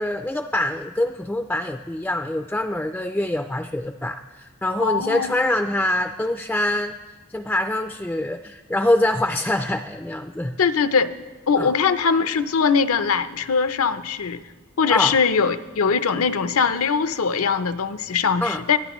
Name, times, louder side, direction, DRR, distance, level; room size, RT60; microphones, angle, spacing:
voice 1, 0.0-6.9 7.3-10.6 11.6-11.7 14.9-15.1 18.4-18.6, left 1 dB, 5° left, 7 dB, 0.3 m, -24 dB
voice 2, 4.8-5.3 10.6-11.1 11.5-14.4 14.8-18.8, left 5 dB, 85° left, 12 dB, 0.6 m, -21 dB
22.0 x 12.0 x 3.1 m, 1.3 s
head